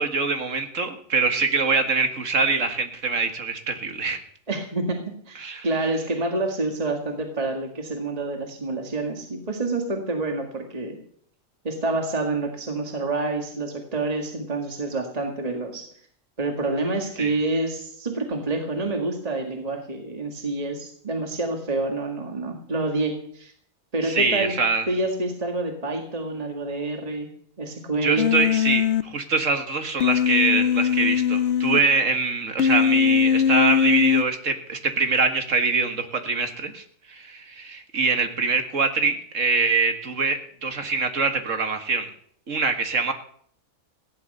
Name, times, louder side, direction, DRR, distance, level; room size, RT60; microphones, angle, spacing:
voice 1, 0.0-4.2 5.4-5.7 17.2-17.3 24.0-24.9 28.0-42.1 42.5-43.1, right 4 dB, 65° right, 7 dB, 2.1 m, -24 dB
voice 2, 4.5-11.0 11.6-15.9 16.4-23.5 23.9-24.5 24.9-27.3 27.6-28.3, right 2 dB, 30° right, 3 dB, 2.0 m, -28 dB
Human voice, 28.2-29.0 30.0-31.8 32.6-34.2, left 8 dB, 60° left, 1.0 m, -20 dB
16.5 x 11.0 x 6.7 m, 0.62 s
omnidirectional pair, 1.4 m